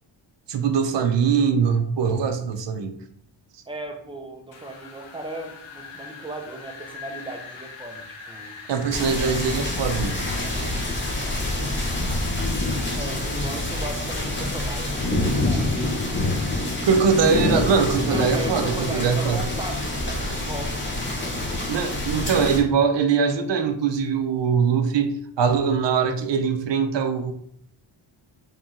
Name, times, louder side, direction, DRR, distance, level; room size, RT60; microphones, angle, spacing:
voice 1, 0.5-3.0 8.7-10.3 16.9-19.4 21.7-27.3, right 6 dB, 60° right, 7 dB, 0.6 m, -22 dB
voice 2, 3.7-8.6 10.3-11.6 11.9-12.3 13.0-15.8 18.0-20.9 21.2-21.5, right 1 dB, 10° right, 3 dB, 0.3 m, -37 dB
Wind, 4.5-16.5, left 4 dB, 65° left, 0.8 m, -43 dB
sound 1, 8.9-22.6, left 1 dB, 25° left, 0.8 m, -26 dB
3.1 x 2.9 x 3.6 m, 0.68 s
wide cardioid pair, 170°, 49 cm